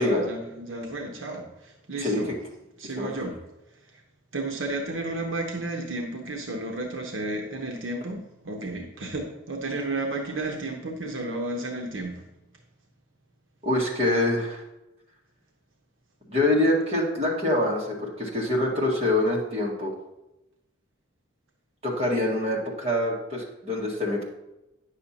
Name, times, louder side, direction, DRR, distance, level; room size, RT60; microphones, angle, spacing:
voice 1, 0.0-2.3 2.8-3.4 3.9-4.0 4.3-12.2, right 2 dB, 70° right, 1 dB, 0.9 m, -32 dB
voice 2, 13.6-14.6 16.3-19.9 21.8-24.2, left 1 dB, 30° right, -3 dB, 1.7 m, -25 dB
9.6 x 6.7 x 2.8 m, 0.93 s
head